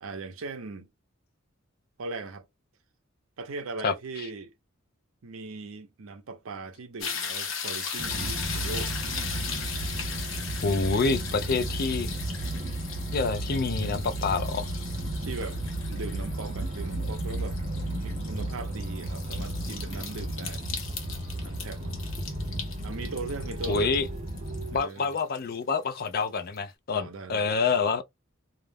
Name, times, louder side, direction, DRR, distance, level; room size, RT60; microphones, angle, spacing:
voice 1, 0.0-0.9 2.0-2.4 3.4-4.5 5.2-8.9 15.2-15.6 15.9-17.6 18.0-20.6 21.4-21.8 22.8-23.9 24.7-25.1 26.9-27.6, right 3 dB, 85° right, 0.6 m, -39 dB
sound 1, 7.0-26.1 26.5-26.6, left 6 dB, 70° left, 0.8 m, -38 dB
sound 2, 8.0-24.8, right 1 dB, 35° right, 0.5 m, -33 dB
voice 2, 10.6-12.1 13.1-14.7 23.7-24.1 24.7-28.0, left 4 dB, 45° left, 0.4 m, -27 dB
2.4 x 2.0 x 3.2 m
head